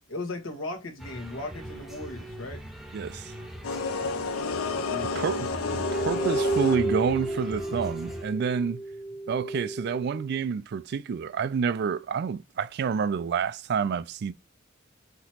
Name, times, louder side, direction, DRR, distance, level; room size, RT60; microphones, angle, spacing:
voice 1, 0.1-2.6 4.9-5.5, left 2 dB, 70° left, 1.3 m, -37 dB
sound 1, 1.0-8.2, equal, ahead, 0.7 m, -41 dB
voice 2, 2.9-3.3 5.2-8.8 9.3-14.3, right 6 dB, 50° right, 0.3 m, -28 dB
sound 2, 3.6-7.1, left 4 dB, 90° left, 0.6 m, -30 dB
sound 3, 4.8-10.4, right 2 dB, 35° left, 0.8 m, -32 dB
5.9 x 3.0 x 2.9 m
head